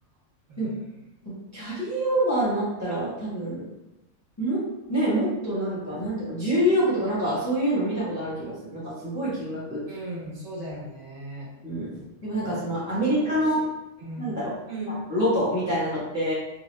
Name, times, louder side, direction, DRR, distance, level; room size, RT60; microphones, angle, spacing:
voice 1, 0.5-0.9 9.9-11.5 11.9-12.1 12.4-12.8 13.1-13.7 14.0-14.4 14.7-15.0, right 1 dB, 70° right, -6 dB, 1.3 m, -38 dB
voice 2, 1.2-3.7 4.4-4.6 4.9-9.8 11.6-13.6 14.2-14.5 15.1-16.3, equal, 15° left, -8 dB, 0.7 m, -26 dB
2.8 x 2.2 x 3.1 m, 0.95 s
omnidirectional pair, 1.3 m